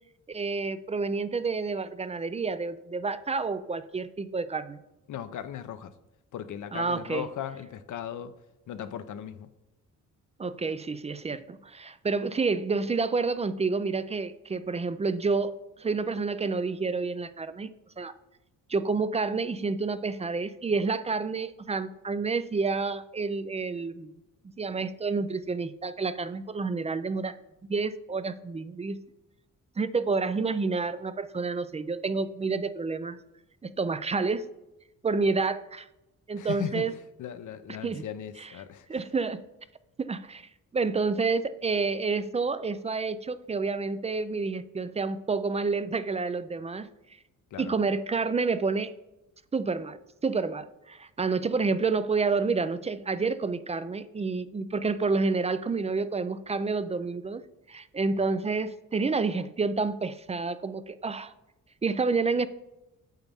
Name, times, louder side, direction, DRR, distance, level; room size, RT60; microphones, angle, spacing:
voice 1, 0.3-4.8 6.7-7.2 10.4-18.1 18.7-24.2 24.6-27.3 27.7-29.0 29.8-33.2 33.6-34.4 35.0-35.9 36.3-36.9 37.8-38.0 38.9-39.4 40.0-40.4 40.7-46.9 47.6-48.9 49.5-57.4 57.7-61.3 61.8-62.5, right 4 dB, 20° right, 0.4 m, -29 dB
voice 2, 5.1-6.0 6.3-8.3 8.7-9.5 36.4-36.9 37.2-39.0 47.5-47.7, left 9 dB, 65° left, 0.6 m, -37 dB
9.1 x 7.0 x 3.5 m
cardioid pair, 100°, 33 cm